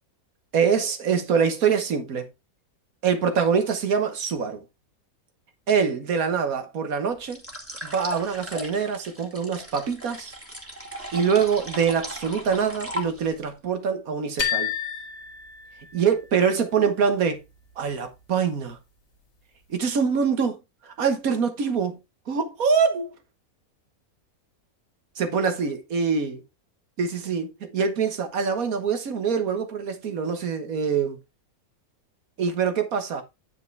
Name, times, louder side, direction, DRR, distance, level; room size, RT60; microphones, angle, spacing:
voice 1, 0.5-2.3 3.0-4.6 5.7-7.4 7.8-10.4 11.1-14.7 15.9-17.4 17.8-18.8 19.7-22.0 22.3-23.1 25.2-26.4 27.0-31.2 32.4-33.2, right 6 dB, 70° right, 1.7 m, -24 dB
sound 1, 7.3-13.5, equal, 10° right, 2.1 m, -37 dB
sound 2, 14.4-16.3, left 9 dB, 65° left, 2.2 m, -30 dB
9.5 x 5.9 x 3.3 m
omnidirectional pair, 1.5 m